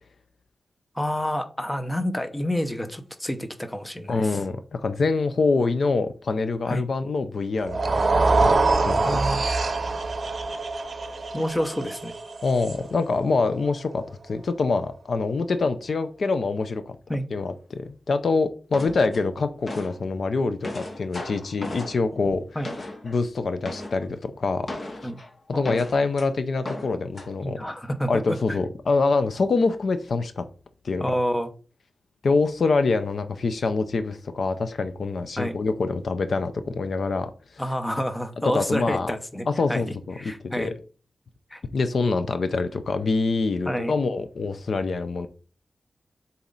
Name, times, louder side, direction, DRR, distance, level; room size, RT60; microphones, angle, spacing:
voice 1, 0.9-4.4 6.7-6.8 9.0-9.4 11.3-12.1 17.1-17.3 22.6-22.7 25.0-25.2 25.5-25.8 27.4-28.6 31.0-31.5 35.4-35.6 37.6-39.8 40.2-40.7 41.5-41.6 43.7-43.9, equal, 10° left, 0.8 m, -28 dB
voice 2, 4.1-9.1 12.4-17.0 17.3-22.4 23.0-24.7 25.0-25.1 25.5-27.6 28.1-30.4 30.8-31.1 32.2-37.6 38.4-39.1 39.5-40.7 41.7-45.3, left 3 dB, 65° left, 0.6 m, -25 dB
sound 1, 7.6-13.9, right 3 dB, 45° right, 0.8 m, -24 dB
sound 2, 18.7-20.0 20.4-23.2 23.6-24.1 24.7-26.3 26.6-27.3, left 2 dB, 40° left, 1.0 m, -36 dB
7.2 x 4.2 x 3.9 m
wide cardioid pair, 135°, 0 cm